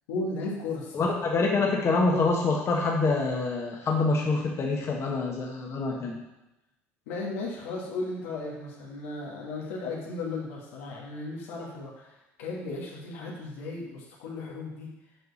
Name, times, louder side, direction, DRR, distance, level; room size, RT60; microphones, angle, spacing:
voice 1, 0.1-1.0 7.1-12.1 12.4-14.9, left 3 dB, 85° left, -3 dB, 1.8 m, -35 dB
voice 2, 0.9-6.2, left 3 dB, 40° left, -1 dB, 1.4 m, -26 dB
7.8 x 4.7 x 4.1 m, 0.95 s
hypercardioid pair, 75°, 7 cm